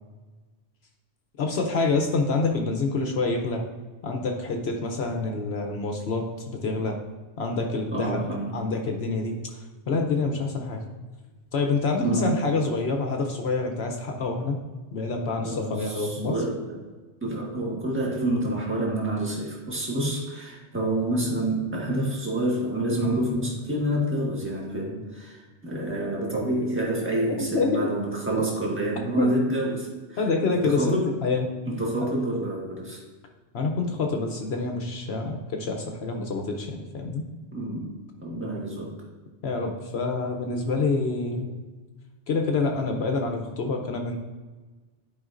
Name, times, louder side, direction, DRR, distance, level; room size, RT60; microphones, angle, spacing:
voice 1, 1.4-3.6 4.0-7.0 7.4-8.2 8.5-9.4 9.9-10.8 11.5-14.6 14.9-16.4 27.3-27.9 29.2-29.3 30.2-31.5 33.5-37.2 39.4-41.6 42.3-44.2, left 3 dB, 65° left, 3 dB, 0.9 m, -27 dB
voice 2, 7.9-8.6 12.0-12.5 15.4-16.6 17.2-30.2 30.6-31.1 31.7-33.0 37.5-37.9 38.2-39.0, right 1 dB, 10° right, -3 dB, 1.4 m, -28 dB
11.0 x 4.8 x 2.5 m, 1.3 s
omnidirectional pair, 1.2 m